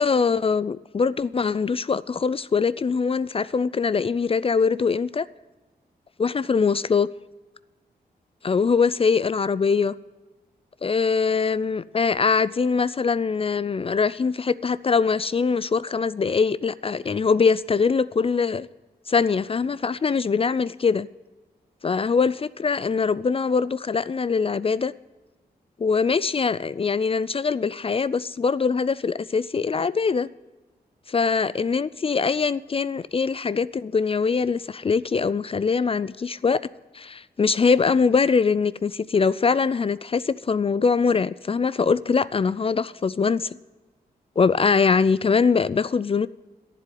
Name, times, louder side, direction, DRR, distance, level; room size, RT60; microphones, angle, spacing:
voice 1, 0.0-5.3 6.2-7.1 8.4-9.9 10.8-18.7 19.1-21.1 21.8-24.9 25.8-30.3 31.1-36.6 36.9-43.6 44.4-46.3, left 5 dB, 35° left, 0.4 m, -22 dB
11.0 x 7.5 x 9.2 m
cardioid pair, 60°, 17 cm